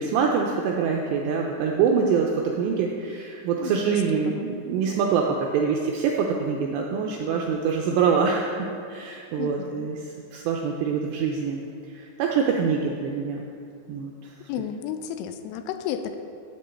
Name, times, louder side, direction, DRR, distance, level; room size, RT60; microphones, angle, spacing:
voice 1, 0.0-10.1 10.3-11.6 11.9-13.4 13.9-14.3, right 6 dB, 90° right, 0 dB, 2.5 m, -25 dB
voice 2, 3.6-4.5 9.4-9.9 14.5-16.2, left 9 dB, 85° left, 8 dB, 3.0 m, -33 dB
12.0 x 8.4 x 4.4 m, 2.5 s
omnidirectional pair, 5.7 m